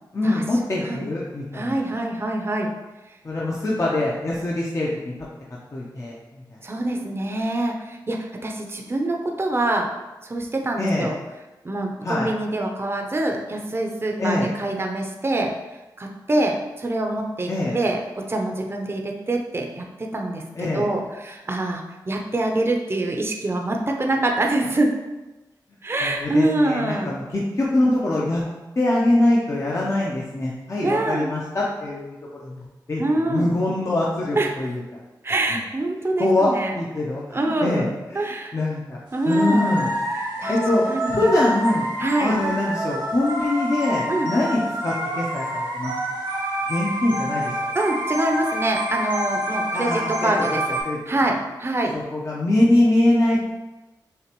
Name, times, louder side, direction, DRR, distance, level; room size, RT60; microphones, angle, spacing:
voice 1, 0.1-1.8 3.2-5.1 5.7-6.4 10.8-11.1 12.0-12.3 14.2-14.5 17.5-17.8 20.6-20.9 26.0-28.4 28.8-33.0 33.3-35.0 35.5-35.6 36.2-38.2 38.5-39.0 39.3-39.9 40.5-41.9 42.2-45.9 46.7-47.6 49.7-50.3 50.8-51.3 51.9-53.4, left 1 dB, 40° left, -5 dB, 0.8 m, -23 dB
voice 2, 1.5-2.7 6.6-9.9 10.2-11.2 11.6-15.5 16.0-19.8 20.1-20.4 20.7-24.9 25.8-27.1 30.8-31.3 33.0-33.5 34.4-34.5 35.2-36.7 37.3-38.5 39.1-39.9 40.4-40.6 40.9-41.3 42.0-42.4 44.1-44.3 47.7-50.8 51.1-51.9, right 2 dB, 30° right, 1 dB, 0.7 m, -25 dB
sound 1, 39.3-50.8, right 1 dB, 90° right, 1.3 m, -27 dB
6.5 x 2.5 x 3.0 m, 1.1 s
cardioid pair, 50°, 8 cm